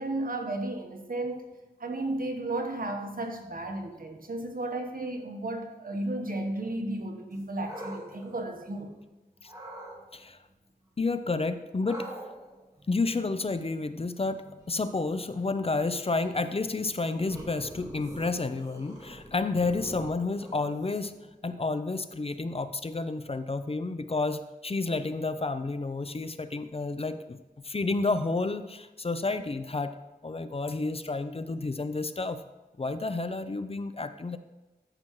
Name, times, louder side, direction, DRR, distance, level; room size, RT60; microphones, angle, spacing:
voice 1, 0.0-1.5 1.8-9.0, right 2 dB, 65° right, 3 dB, 1.2 m, -34 dB
sound 1, 7.3-9.0 9.5-10.0 11.8-21.3, right 1 dB, 20° right, 2.0 m, -46 dB
voice 2, 11.0-12.1 12.9-21.1 21.4-27.4 27.6-29.9 30.2-32.4 32.8-34.4, left 3 dB, 40° left, 11 dB, 0.5 m, -30 dB
13.5 x 6.0 x 3.1 m, 1.1 s
wide cardioid pair, 60°, 16 cm